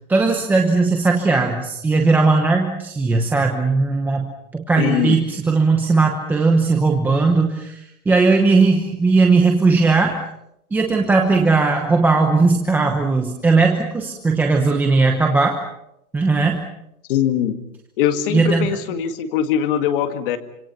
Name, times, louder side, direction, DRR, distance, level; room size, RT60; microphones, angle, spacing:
voice 1, 0.1-4.3 4.5-10.2 10.7-15.6 16.1-16.6 18.3-18.7, right 3 dB, 5° right, 2 dB, 0.9 m, -17 dB
voice 2, 4.8-5.2 17.1-17.6 18.0-20.4, left 9 dB, 40° left, 8 dB, 2.0 m, -21 dB
26.5 x 26.5 x 5.8 m, 0.80 s
hypercardioid pair, 165°, 43 cm